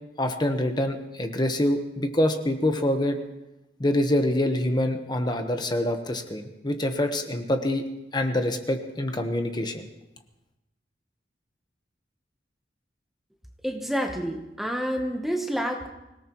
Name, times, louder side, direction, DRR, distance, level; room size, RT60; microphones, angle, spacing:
voice 1, 0.2-3.2 3.8-7.8 8.1-9.9, left 1 dB, 25° left, 6 dB, 1.2 m, -25 dB
voice 2, 13.6-15.9, equal, ahead, 3 dB, 1.0 m, -28 dB
25.0 x 17.5 x 3.1 m, 0.93 s
head